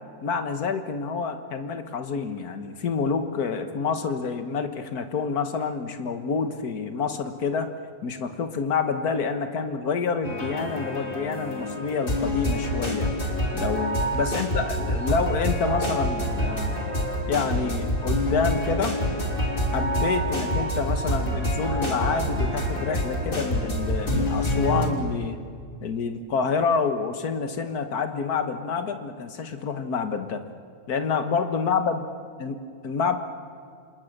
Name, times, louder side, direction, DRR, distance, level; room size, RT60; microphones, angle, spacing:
voice 1, 0.2-7.7 8.0-13.1 13.5-16.7 17.3-19.0 19.7-25.4 25.8-30.4 30.9-32.0 32.4-32.6 32.8-33.2, left 5 dB, 55° left, 8 dB, 1.8 m, -28 dB
sound 1, 10.2-24.9, equal, 25° left, 3.3 m, -27 dB
28.0 x 27.5 x 6.7 m, 2.2 s
omnidirectional pair, 2.1 m